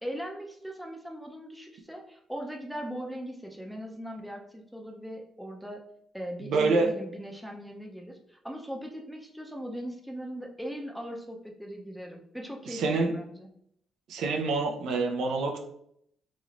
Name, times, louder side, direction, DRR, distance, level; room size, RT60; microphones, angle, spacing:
voice 1, 0.0-5.8 6.1-13.5, equal, ahead, 0 dB, 0.6 m, -39 dB
voice 2, 6.4-6.9 12.7-13.1 14.1-15.6, right 3 dB, 80° right, 3 dB, 0.5 m, -26 dB
3.1 x 3.0 x 2.5 m, 0.71 s
cardioid pair, 90°, 0 cm